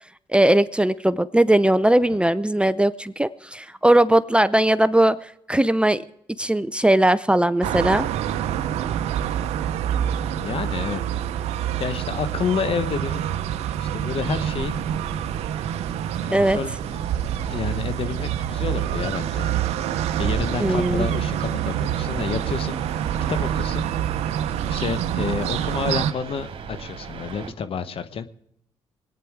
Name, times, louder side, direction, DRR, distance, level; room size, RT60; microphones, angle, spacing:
voice 1, 0.3-6.0 6.4-8.1 16.3-16.6 20.6-21.1, right 1 dB, 10° right, 16 dB, 0.6 m, -19 dB
sound 1, 7.6-26.1, right 10 dB, 80° right, 0.7 m, -26 dB
voice 2, 10.4-11.0 11.8-13.2 13.8-14.7 16.2-16.7 17.5-19.5 19.9-23.0 23.3-23.9 24.7-28.3, left 6 dB, 60° left, 12 dB, 1.2 m, -29 dB
sound 2, 14.1-27.5, right 5 dB, 60° right, 2.2 m, -37 dB
22.5 x 9.4 x 4.7 m, 0.78 s
supercardioid pair, 60°, 11 cm